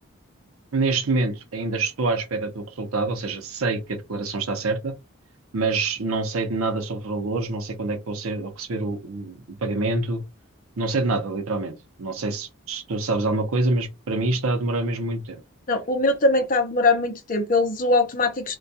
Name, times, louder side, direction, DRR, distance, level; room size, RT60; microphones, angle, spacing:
voice 1, 0.7-4.9 5.5-10.2 10.8-15.4, right 3 dB, 80° right, 0.6 m, -26 dB
voice 2, 15.7-18.6, left 2 dB, 40° left, 0.5 m, -21 dB
2.2 x 2.2 x 2.6 m
head